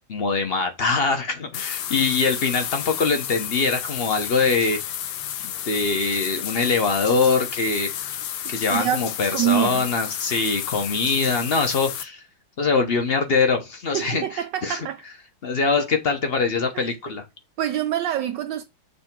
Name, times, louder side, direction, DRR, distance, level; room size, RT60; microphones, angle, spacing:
voice 1, 0.1-4.8 5.4-7.9 8.5-12.2 12.6-14.8 15.4-17.2, left 4 dB, 40° left, 0.8 m, -23 dB
sound 1, 1.5-12.0, left 10 dB, 70° left, 1.0 m, -31 dB
voice 2, 8.7-9.8 13.9-15.0 16.7-16.9 17.6-18.6, right 12 dB, 70° right, 1.1 m, -26 dB
6.9 x 3.4 x 6.0 m
omnidirectional pair, 2.3 m